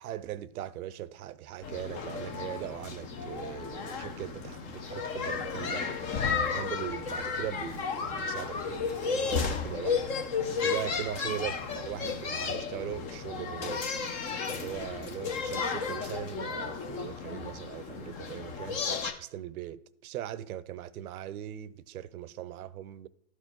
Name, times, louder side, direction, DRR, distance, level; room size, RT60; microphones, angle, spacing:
voice 1, 0.0-5.9 6.4-10.1 10.6-13.9 14.4-18.8 19.2-23.1, right 12 dB, 70° right, 0.7 m, -40 dB
sound 1, 1.6-19.1, left 5 dB, 20° left, 0.4 m, -33 dB
13.0 x 4.6 x 2.9 m
hypercardioid pair, 130°, 45 cm